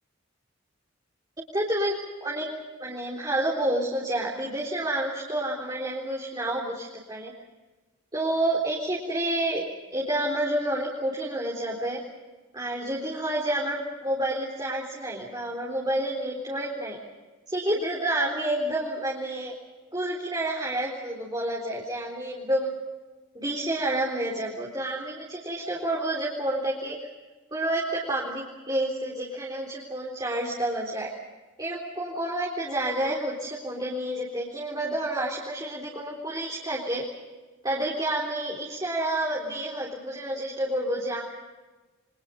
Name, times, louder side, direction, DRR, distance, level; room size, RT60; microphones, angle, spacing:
voice 1, 1.5-2.5 2.8-7.3 8.1-9.7 9.9-12.0 12.5-17.0 17.5-19.5 19.9-22.7 23.3-27.0 27.5-31.1 31.6-37.0 37.6-41.2, right 1 dB, 20° right, -3 dB, 3.9 m, -29 dB
29.0 x 25.0 x 5.4 m, 1.2 s
head